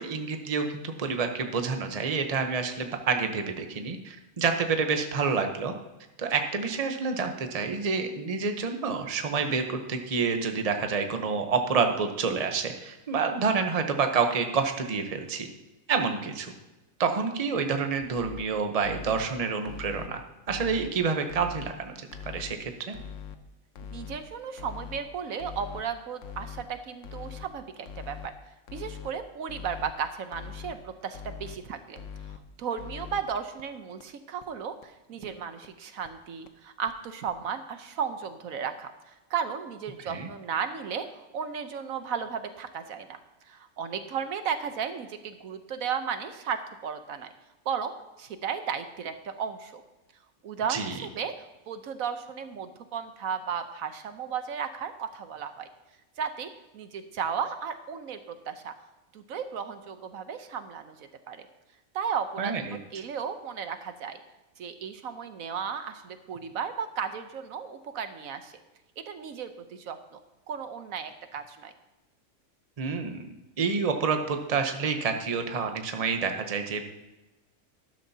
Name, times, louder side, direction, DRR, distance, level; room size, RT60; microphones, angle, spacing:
voice 1, 0.0-5.7 6.2-15.5 15.9-16.5 17.0-20.2 20.5-22.0 22.2-23.0 40.0-40.3 50.7-51.1 62.4-62.8 72.8-73.3 73.6-76.8, right 5 dB, 30° right, 5 dB, 0.9 m, -28 dB
sound 1, 18.0-18.4 18.8-19.3 19.6-20.1 20.5-20.9 21.3-21.7 22.1-22.5 22.9-23.4 23.8-24.2 24.6-25.0 25.4-25.8 26.2-26.6 27.0-27.5 27.9-28.3 28.7-29.1 29.5-29.9 30.3-30.7 31.1-31.6 32.0-32.4 32.8-33.2 33.6-33.7 34.0-34.1 34.4-34.5 34.8-34.9 35.2-35.3 35.6-35.7 36.0-36.1 36.5-36.6 36.9-37.0 37.3-37.4, left 8 dB, 65° left, 1.1 m, -41 dB
voice 2, 23.9-28.3 28.7-32.0 32.6-43.2 43.5-47.3 47.6-49.8 50.4-51.3 51.7-55.7 56.2-58.7 59.1-61.5 61.9-62.6 62.9-64.2 64.6-68.5 69.0-70.2 70.5-71.7, right 7 dB, 75° right, 9 dB, 1.2 m, -34 dB
12.5 x 12.0 x 2.8 m, 1.1 s
omnidirectional pair, 1.5 m